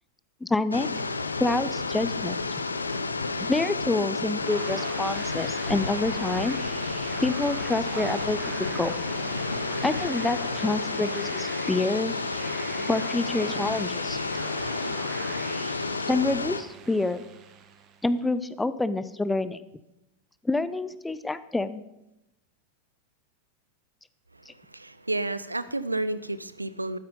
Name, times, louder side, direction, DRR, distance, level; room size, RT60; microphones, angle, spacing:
voice 1, 0.4-0.9 1.4-2.4 3.4-6.6 7.2-8.4 8.7-8.9 9.8-12.1 12.9-14.2 16.1-17.2 18.0-19.6 20.4-21.8 24.5-24.6, left 2 dB, 10° left, 15 dB, 0.6 m, -27 dB
sound 1, 0.7-16.6, left 3 dB, 80° left, 0.7 m, -31 dB
sound 2, 4.4-18.1, right 7 dB, 35° right, 1.3 m, -42 dB
Male speech man speaking, 7.9-9.4 10.0-10.3 11.4-11.5 11.8-12.8 13.2-14.2, right 2 dB, 55° right, 4.3 m, -46 dB
voice 2, 24.3-27.0, right 2 dB, 85° right, 15 dB, 0.5 m, -31 dB
12.5 x 9.4 x 5.3 m, 0.90 s
figure-of-eight pair, 90°, 0 cm